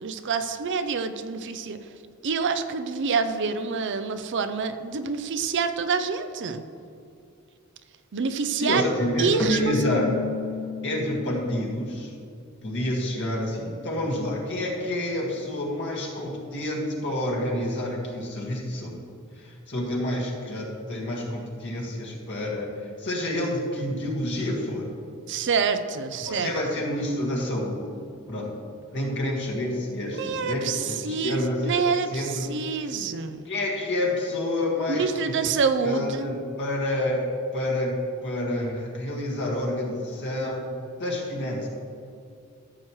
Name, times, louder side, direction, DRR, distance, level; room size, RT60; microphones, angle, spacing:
voice 1, 0.0-1.8 2.2-6.6 8.1-8.8 9.2-9.7 25.3-26.5 30.1-33.4 34.9-36.3, right 5 dB, 55° right, 9 dB, 0.5 m, -27 dB
voice 2, 8.6-10.2 10.8-12.1 12.6-19.1 19.4-24.9 26.2-27.9 28.3-28.5 28.9-32.9 33.5-35.4 35.8-40.7 41.0-41.7, left 1 dB, 55° left, -2 dB, 1.9 m, -28 dB
Keyboard (musical), 9.4-11.4, left 1 dB, 15° left, 0.7 m, -30 dB
13.5 x 7.3 x 3.1 m, 2.4 s
head